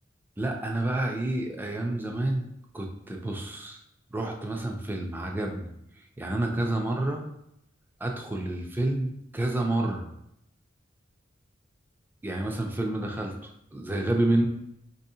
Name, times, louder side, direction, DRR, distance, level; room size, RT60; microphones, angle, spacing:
voice 1, 0.4-2.5 2.7-3.8 4.1-5.7 6.2-7.2 8.0-10.1 12.2-14.5, right 1 dB, 10° right, 1 dB, 0.4 m, -29 dB
4.0 x 2.7 x 2.7 m, 0.78 s
head